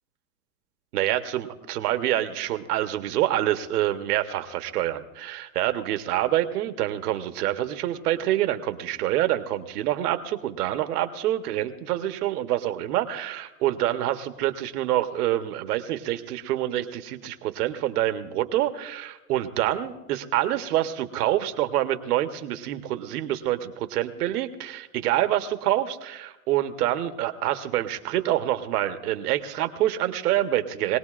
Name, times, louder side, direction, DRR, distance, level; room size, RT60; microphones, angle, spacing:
voice 1, 0.9-31.0, right 13 dB, 70° right, 9 dB, 1.2 m, -26 dB
22.0 x 18.5 x 2.5 m, 1.0 s
hypercardioid pair, 125°, 47 cm